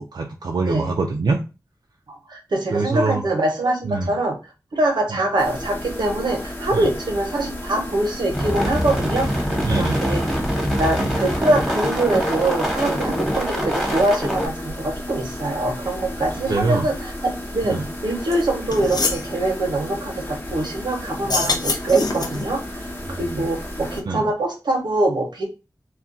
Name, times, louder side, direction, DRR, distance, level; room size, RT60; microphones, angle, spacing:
voice 1, 0.0-1.4 2.7-3.2 3.9-4.1 5.1-5.2 6.7-6.9 9.6-10.1 11.0-11.2 16.5-16.9 17.7-17.8 23.1-23.5 24.0-24.2, right 3 dB, 70° right, 1 dB, 0.4 m, -24 dB
voice 2, 2.3-4.4 4.7-9.5 9.8-10.3 10.8-17.8 18.0-22.8 23.2-25.5, right 2 dB, 85° right, 1 dB, 0.8 m, -23 dB
sound 1, 5.4-24.0, left 1 dB, 25° left, 0.9 m, -33 dB
sound 2, 8.3-14.5, equal, ahead, 1.1 m, -24 dB
sound 3, 18.3-18.4 18.7-19.3 21.2-22.5, left 3 dB, 65° left, 0.5 m, -24 dB
2.3 x 2.2 x 3.8 m, 0.30 s
wide cardioid pair, 55°, 7 cm